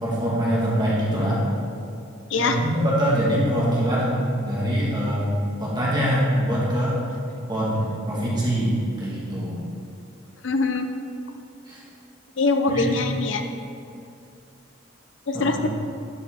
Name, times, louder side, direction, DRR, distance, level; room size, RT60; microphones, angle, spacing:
voice 1, 0.0-1.4 2.3-5.3 5.6-7.0 7.5-9.6 11.6-11.8 12.7-13.0 15.3-15.7, equal, 20° right, -6 dB, 1.6 m, -23 dB
voice 2, 10.4-10.9 12.4-13.4 15.3-15.7, left 3 dB, 65° left, 6 dB, 0.7 m, -23 dB
11.0 x 5.7 x 3.6 m, 2.5 s
head